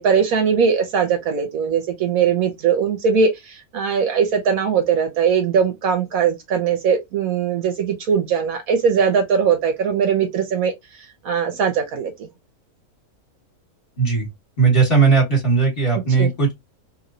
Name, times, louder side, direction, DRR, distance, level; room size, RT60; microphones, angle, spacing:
voice 1, 0.0-10.7 11.2-12.3 16.2-16.3, right 6 dB, 70° right, 1.1 m, -20 dB
voice 2, 14.0-14.3 14.6-16.5, right 5 dB, 40° left, 1.6 m, -17 dB
3.0 x 2.9 x 2.6 m
omnidirectional pair, 1.6 m